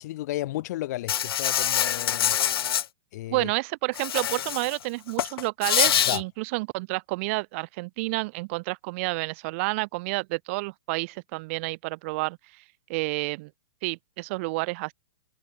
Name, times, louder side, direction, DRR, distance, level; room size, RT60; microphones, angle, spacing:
voice 1, 0.0-2.4 3.1-3.5 6.1-6.2, left 16 dB, 40° left, 3.0 m, -33 dB
Insect, 1.1-2.8 3.9-4.8 5.1-6.2, left 10 dB, 65° left, 1.6 m, -25 dB
voice 2, 3.3-12.6 12.9-13.5 13.8-14.9, right 25 dB, 30° right, 1.2 m, -30 dB
hypercardioid pair, 170°, 13 cm